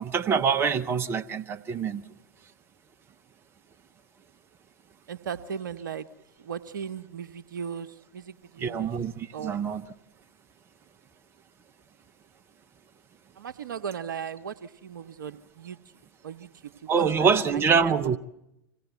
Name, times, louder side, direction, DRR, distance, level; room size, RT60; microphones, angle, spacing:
voice 1, 0.0-2.1 8.6-9.9 16.9-18.2, right 6 dB, 20° right, 8 dB, 0.7 m, -25 dB
voice 2, 5.1-6.1 6.4-7.9 8.1-8.9 9.3-9.6 13.4-15.8 16.2-18.2, right 7 dB, 65° right, 11 dB, 0.9 m, -37 dB
25.0 x 17.0 x 8.2 m, 0.89 s
figure-of-eight pair, 100°, 11 cm